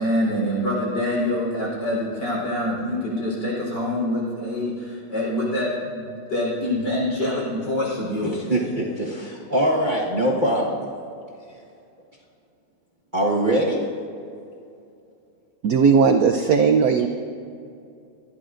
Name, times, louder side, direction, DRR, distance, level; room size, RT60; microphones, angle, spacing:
voice 1, 0.0-8.6, left 1 dB, 55° left, -4 dB, 4.5 m, -25 dB
voice 2, 8.5-8.8 9.5-10.7 13.1-13.8, right 1 dB, 25° right, -5 dB, 1.3 m, -21 dB
voice 3, 15.6-17.1, right 6 dB, 70° right, 5 dB, 0.8 m, -17 dB
24.0 x 11.0 x 2.5 m, 2.5 s
omnidirectional pair, 2.2 m